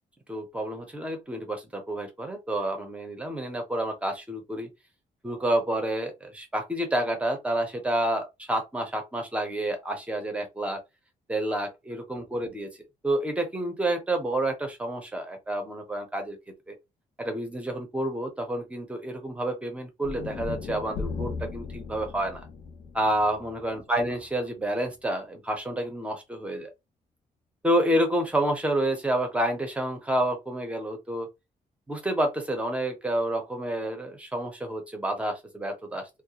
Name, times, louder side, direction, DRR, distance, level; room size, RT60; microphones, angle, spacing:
voice 1, 0.3-4.7 5.2-10.8 11.3-12.7 13.0-16.4 16.7-16.8 17.2-22.5 22.9-26.7 27.6-31.3 31.9-36.1, right 1 dB, 10° right, 0.6 m, -29 dB
sound 1, 20.0-24.3, left 4 dB, 50° left, 0.5 m, -37 dB
2.3 x 2.1 x 2.8 m
cardioid pair, 170°, 14 cm